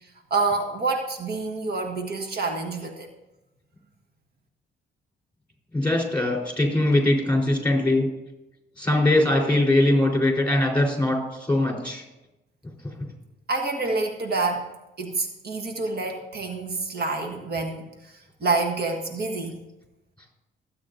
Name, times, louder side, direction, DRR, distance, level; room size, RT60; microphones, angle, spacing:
voice 1, 0.0-3.1 13.5-14.7 15.0-19.6, right 3 dB, 55° right, 3 dB, 1.5 m, -28 dB
voice 2, 5.7-8.1 8.8-12.0, left 1 dB, 5° left, 0 dB, 4.0 m, -21 dB
25.0 x 8.6 x 2.7 m, 0.99 s
cardioid pair, 90°, 20 cm